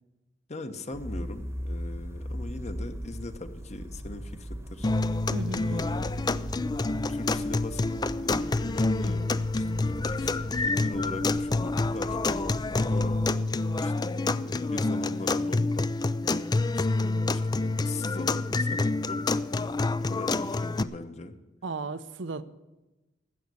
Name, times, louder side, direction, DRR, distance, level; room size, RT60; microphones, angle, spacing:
voice 1, 0.5-4.9 5.4-6.3 6.9-13.2 13.8-15.9 16.7-16.9 17.2-21.3, left 2 dB, 35° left, 8 dB, 1.0 m, -40 dB
sound 1, 0.9-13.4, equal, 15° right, 1.1 m, -39 dB
sound 2, 4.8-20.8, left 3 dB, 20° left, 0.4 m, -27 dB
voice 2, 5.3-6.0 21.6-22.4, right 3 dB, 75° right, 11 dB, 0.8 m, -35 dB
15.5 x 6.5 x 9.6 m, 1.0 s
head